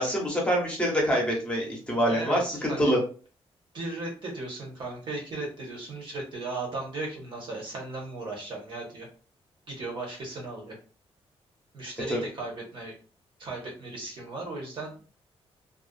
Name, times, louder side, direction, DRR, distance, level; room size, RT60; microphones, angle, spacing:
voice 1, 0.0-3.0 12.1-12.2, equal, 10° left, -2 dB, 0.9 m, -25 dB
voice 2, 2.1-2.9 3.7-9.1 9.7-10.8 11.7-12.9 13.4-14.9, right 2 dB, 50° right, -1 dB, 1.0 m, -36 dB
2.4 x 2.3 x 2.4 m, 0.38 s
wide cardioid pair, 155°, 11 cm